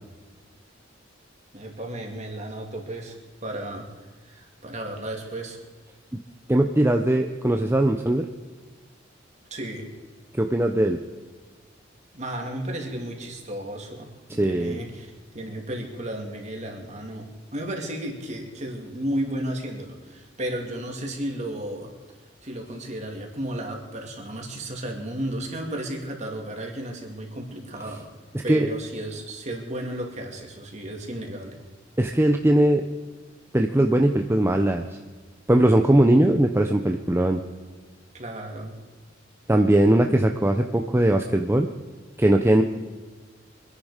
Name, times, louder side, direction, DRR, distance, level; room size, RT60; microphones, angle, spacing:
voice 1, 1.5-3.2 3.4-3.9 4.3-5.6 9.5-9.9 12.1-21.9 22.4-28.1 28.4-31.6 38.1-38.7, right 1 dB, 40° right, 2 dB, 2.7 m, -33 dB
voice 2, 6.5-8.3 10.4-11.0 14.4-14.8 28.5-28.7 32.0-32.8 33.5-34.8 35.5-37.4 39.5-41.7 42.2-42.6, right 1 dB, 15° right, 4 dB, 0.7 m, -20 dB
24.5 x 10.5 x 5.1 m, 1.4 s
head